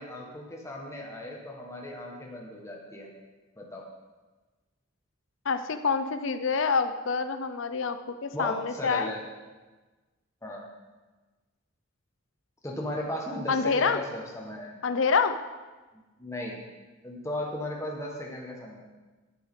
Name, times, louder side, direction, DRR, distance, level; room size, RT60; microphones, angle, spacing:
voice 1, 0.0-3.1 3.6-3.8 8.3-9.2 10.4-10.6 12.6-14.8 16.2-16.6 17.0-18.8, left 1 dB, 15° left, -1 dB, 1.4 m, -36 dB
voice 2, 5.5-9.1 13.5-14.0 14.8-15.4, left 5 dB, 70° left, 10 dB, 0.6 m, -27 dB
11.0 x 8.1 x 3.8 m, 1.2 s
head